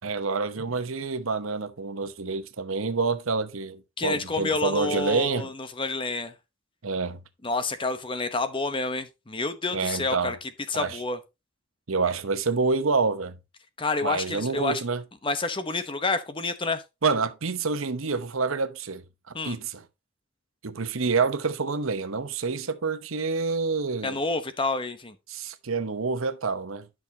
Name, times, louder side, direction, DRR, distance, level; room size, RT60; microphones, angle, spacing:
voice 1, 0.0-5.5 6.8-7.2 9.7-10.4 10.7-11.0 11.9-13.4 14.0-15.0 17.0-19.8 20.6-24.2 25.3-26.9, right 4 dB, 85° right, 0.9 m, -28 dB
voice 2, 4.0-6.3 7.4-11.2 13.8-14.8 15.2-16.8 19.3-19.6 24.0-25.1, left 3 dB, 25° left, 0.9 m, -29 dB
11.0 x 6.2 x 2.8 m
head